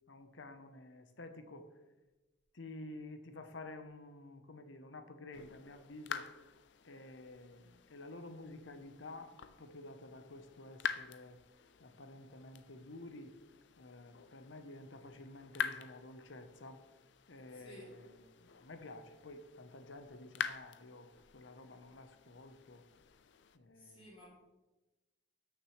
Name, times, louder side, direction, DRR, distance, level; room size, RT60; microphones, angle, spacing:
voice 1, 0.1-1.7 2.5-6.3 6.8-11.4 11.8-13.3 13.8-16.8 17.3-22.8 23.5-24.1, left 2 dB, 85° left, 8 dB, 1.0 m, -51 dB
sound 1, 5.3-23.6, left 7 dB, 65° left, 0.5 m, -47 dB
voice 2, 17.5-17.9 23.7-24.3, left 1 dB, 30° left, -5 dB, 3.0 m, -54 dB
13.0 x 6.4 x 3.2 m, 1.1 s
head